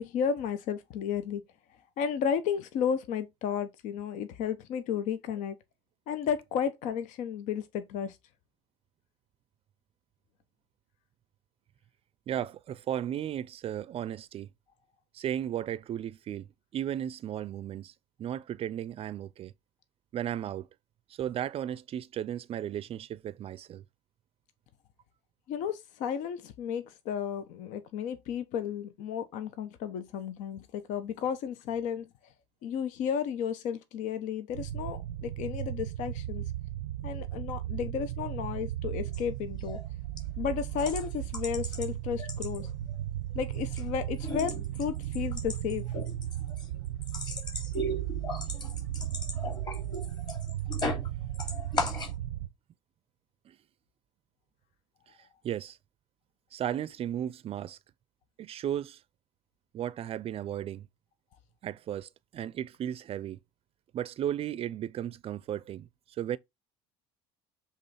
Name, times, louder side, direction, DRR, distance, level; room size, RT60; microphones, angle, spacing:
voice 1, 0.0-1.4 2.0-5.6 6.1-8.2 25.5-32.1 32.6-36.4 37.0-39.8 40.4-42.7 43.3-45.9, left 7 dB, 65° left, 0.8 m, -33 dB
voice 2, 12.3-14.5 15.1-16.5 16.7-17.9 18.2-19.5 20.1-20.7 21.1-23.8 53.5-53.6 55.1-55.2 55.4-55.8 56.5-57.8 58.4-59.0 59.7-60.9 61.6-63.4 63.9-65.9 66.2-66.4, right 10 dB, 45° right, 0.5 m, -35 dB
sound 1, 34.5-52.5, right 13 dB, 90° right, 0.6 m, -36 dB
sound 2, 39.1-39.2 39.6-39.9 40.2-40.3 40.8-41.9 42.2-43.0 43.3-43.9 44.1-51.1 51.3-52.2, left 2 dB, 30° left, 3.0 m, -37 dB
7.6 x 3.7 x 4.2 m
hypercardioid pair, 75°, 14 cm